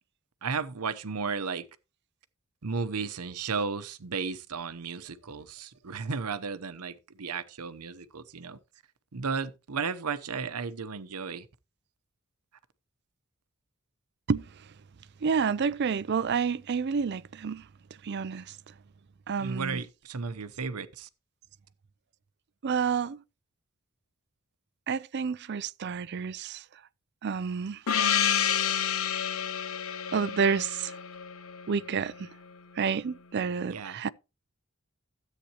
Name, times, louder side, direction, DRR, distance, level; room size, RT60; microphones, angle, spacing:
voice 1, 0.4-1.7 2.6-8.6 9.1-11.5 19.4-21.1 33.7-34.0, right 5 dB, 90° right, 0.8 m, -34 dB
voice 2, 15.2-17.6 18.0-18.4 19.3-19.8 22.6-23.2 24.9-26.6 27.2-27.8 30.1-30.9 31.7-32.3 32.8-34.1, right 6 dB, 50° right, 0.4 m, -29 dB
Gong, 27.9-32.2, left 8 dB, 70° left, 0.7 m, -29 dB
13.0 x 8.3 x 2.9 m
head